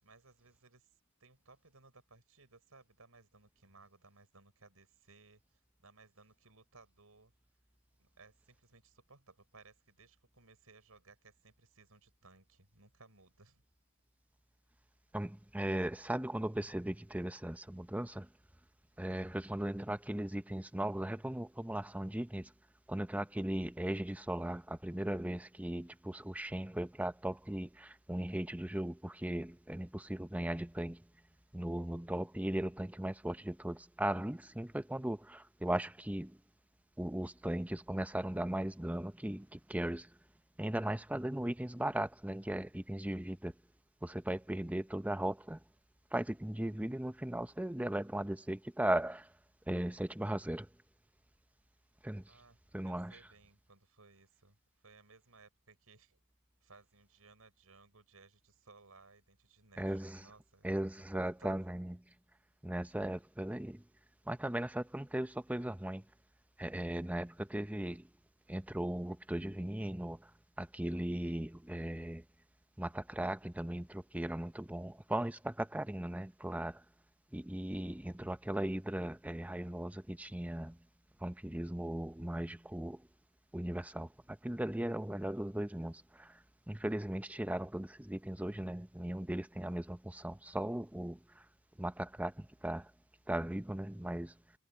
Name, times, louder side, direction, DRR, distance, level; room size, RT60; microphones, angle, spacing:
voice 1, 0.0-7.3 8.0-13.6 52.3-56.2 56.6-60.7 61.1-61.6, right 3 dB, 80° right, 5.6 m, -62 dB
voice 2, 15.1-18.3 19.0-22.5 22.9-31.0 31.5-36.4 37.0-40.1 40.6-43.5 44.0-45.6 46.1-49.3 49.7-50.7 52.0-52.3 52.7-53.2 59.8-60.2 60.6-62.0 62.6-63.8 64.3-66.0 66.6-68.1 68.5-70.3 70.6-72.2 72.8-76.8 77.3-80.8 81.2-83.1 83.5-91.4 91.8-92.9 93.3-94.4, right 1 dB, 5° right, 0.6 m, -37 dB
head